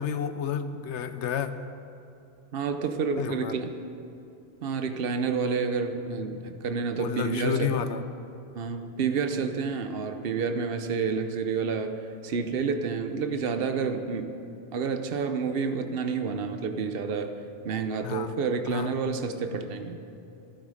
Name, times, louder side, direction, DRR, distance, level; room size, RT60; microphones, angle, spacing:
voice 1, 0.0-1.5 3.2-3.6 7.0-8.0 18.0-18.3 18.7-19.0, left 8 dB, 80° left, 11 dB, 1.0 m, -30 dB
voice 2, 2.5-3.7 4.6-7.8 8.5-14.3 14.7-17.4 17.6-20.0, right 5 dB, 55° right, 7 dB, 1.0 m, -29 dB
14.5 x 12.5 x 5.0 m, 2.8 s
omnidirectional pair, 1.2 m